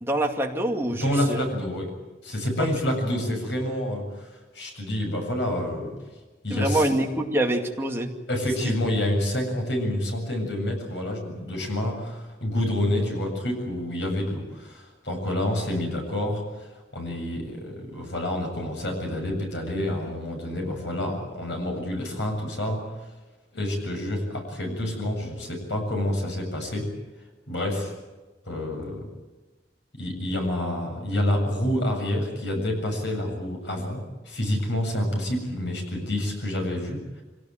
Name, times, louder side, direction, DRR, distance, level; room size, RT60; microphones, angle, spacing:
voice 1, 0.0-1.4 2.6-2.7 6.5-8.1 8.6-8.7, right 1 dB, 15° right, 1 dB, 2.4 m, -25 dB
voice 2, 0.9-1.9 2.2-4.3 4.5-6.0 6.4-6.9 8.3-16.7 16.9-22.9 23.5-26.9 27.5-27.9 28.5-29.1 30.0-37.2, left 1 dB, 85° left, 3 dB, 7.6 m, -28 dB
25.0 x 18.0 x 9.3 m, 1.2 s
head